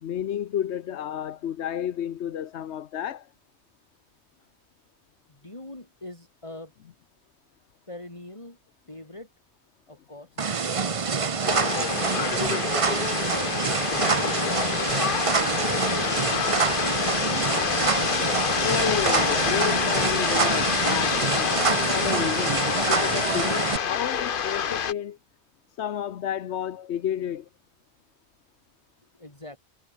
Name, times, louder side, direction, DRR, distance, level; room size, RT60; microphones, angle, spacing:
voice 1, 0.0-3.3 18.6-25.2 25.8-27.5, left 10 dB, 85° left, 1.1 m, -31 dB
voice 2, 5.3-6.7 7.9-8.6 8.9-9.3 9.9-10.5 11.1-12.7 13.0-15.4 29.2-29.6, left 1 dB, 25° left, 3.7 m, -43 dB
sound 1, 10.4-23.8, right 5 dB, 35° right, 0.8 m, -26 dB
sound 2, 11.4-24.9, left 7 dB, 55° left, 1.0 m, -27 dB
omnidirectional pair, 1.1 m